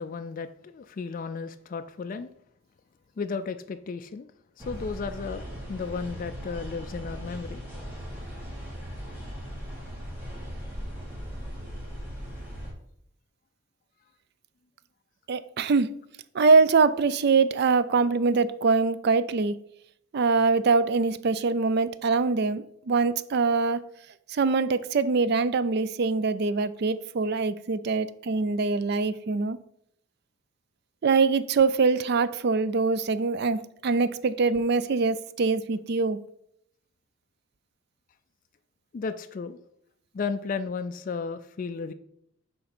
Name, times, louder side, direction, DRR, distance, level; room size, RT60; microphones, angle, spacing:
voice 1, 0.0-2.3 3.2-4.3 4.6-7.6 38.9-39.6 40.1-41.9, left 5 dB, 40° left, 0.3 m, -34 dB
sound 1, 4.6-12.7, equal, 10° right, 2.0 m, -38 dB
voice 2, 15.3-15.9 16.3-19.6 20.1-23.8 24.3-29.6 31.0-36.2, right 4 dB, 50° right, 0.4 m, -23 dB
6.7 x 3.8 x 5.9 m
head